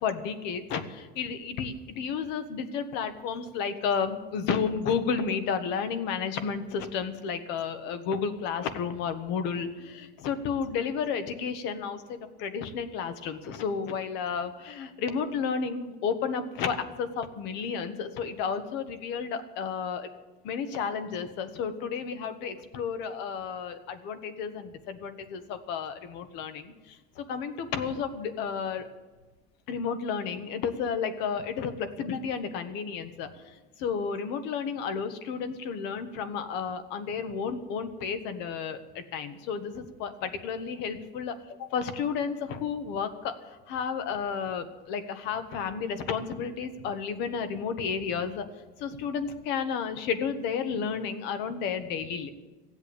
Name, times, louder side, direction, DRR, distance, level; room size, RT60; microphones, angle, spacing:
voice 1, 0.0-20.1 20.4-28.9 29.7-41.3 41.7-43.3 43.7-48.5 48.8-52.3, left 6 dB, 60° left, 9 dB, 1.4 m, -32 dB
15.5 x 8.0 x 8.8 m, 1.2 s
cardioid pair, 160°, 20 cm